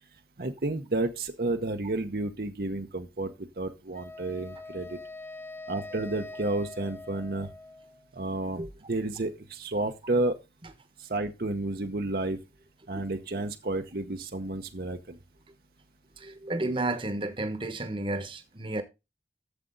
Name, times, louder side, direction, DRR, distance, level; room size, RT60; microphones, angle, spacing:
voice 1, 0.4-5.0 5.7-7.5 8.1-8.6 8.9-10.4 11.0-12.4 12.9-15.2, right 2 dB, 55° right, 0.9 m, -31 dB
Wind instrument woodwind instrument, 3.9-8.1, left 2 dB, 10° left, 0.4 m, -43 dB
voice 2, 16.2-18.8, right 2 dB, 30° right, 1.2 m, -32 dB
11.5 x 7.5 x 3.9 m
head